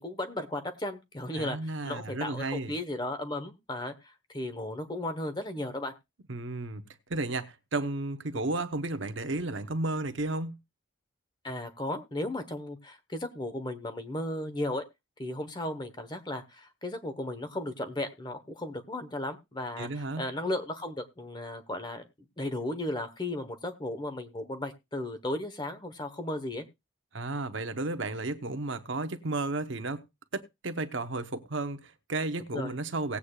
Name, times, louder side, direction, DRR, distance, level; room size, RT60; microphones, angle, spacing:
voice 1, 0.0-5.9 11.4-14.8 15.2-22.0 22.4-26.6 32.5-32.8, left 1 dB, 20° left, 1.1 m, -35 dB
voice 2, 1.3-2.7 6.3-6.8 7.1-10.6 19.8-20.2 27.1-30.0 30.3-33.2, right 2 dB, 70° right, 0.9 m, -33 dB
18.5 x 8.3 x 2.4 m
head